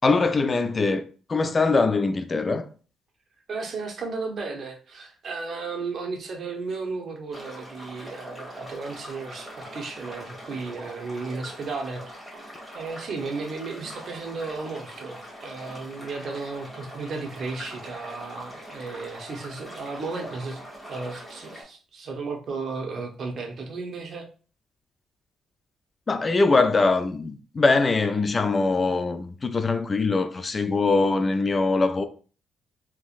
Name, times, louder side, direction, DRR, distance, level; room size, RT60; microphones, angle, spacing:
voice 1, 0.0-1.0 1.3-2.7 26.1-32.1, left 3 dB, 30° left, 0.4 m, -22 dB
voice 2, 3.5-12.1 12.7-24.3, right 4 dB, 55° right, 0.9 m, -34 dB
sound 1, 7.3-21.6, equal, 5° left, 1.6 m, -42 dB
3.6 x 2.9 x 2.4 m
cardioid pair, 90°, 0 cm